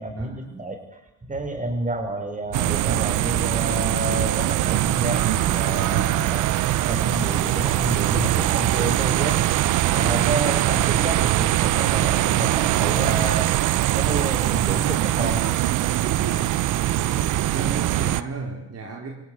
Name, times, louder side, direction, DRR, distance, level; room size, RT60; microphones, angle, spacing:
voice 1, 0.0-6.5 6.9-9.4 9.9-13.5 13.9-15.5 16.0-16.4, right 1 dB, 25° right, 6 dB, 6.3 m, -29 dB
sound 1, 2.5-18.2, right 14 dB, 85° right, 0.9 m, -22 dB
voice 2, 16.2-16.6 16.9-19.1, right 4 dB, 55° right, 1 dB, 4.7 m, -35 dB
27.5 x 17.5 x 10.0 m, 0.92 s
cardioid pair, 90°, 30 cm